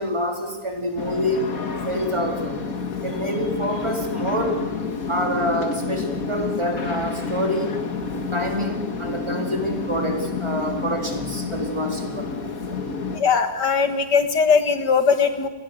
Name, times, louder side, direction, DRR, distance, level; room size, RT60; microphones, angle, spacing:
voice 1, 0.0-1.4 1.8-2.6 3.0-4.6 5.1-7.7 8.3-12.8, equal, 15° right, 2 dB, 3.9 m, -27 dB
sound 1, 1.0-13.2, left 4 dB, 55° left, 2.3 m, -29 dB
voice 2, 13.1-15.5, left 5 dB, 90° left, 9 dB, 2.5 m, -19 dB
28.0 x 20.5 x 7.9 m, 1.2 s
omnidirectional pair, 1.8 m